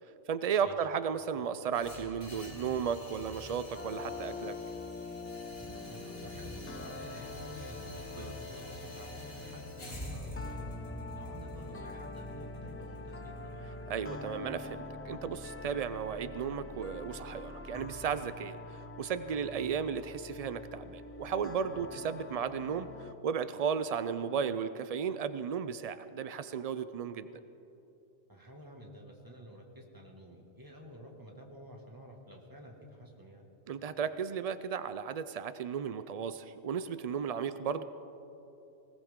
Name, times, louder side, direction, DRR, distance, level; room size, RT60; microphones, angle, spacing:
voice 1, 0.3-4.6 8.2-8.3 13.9-27.3 33.7-37.8, right 7 dB, 80° right, 12 dB, 0.3 m, -34 dB
sound 1, 1.7-13.8, left 1 dB, 55° left, 2.9 m, -47 dB
sound 2, 3.7-23.1, left 3 dB, 20° left, 0.4 m, -45 dB
voice 2, 5.6-10.6 11.1-13.6 21.7-21.8 28.3-33.5, equal, 15° right, 0 dB, 1.9 m, -50 dB
20.5 x 18.0 x 3.7 m, 3.0 s
omnidirectional pair, 1.2 m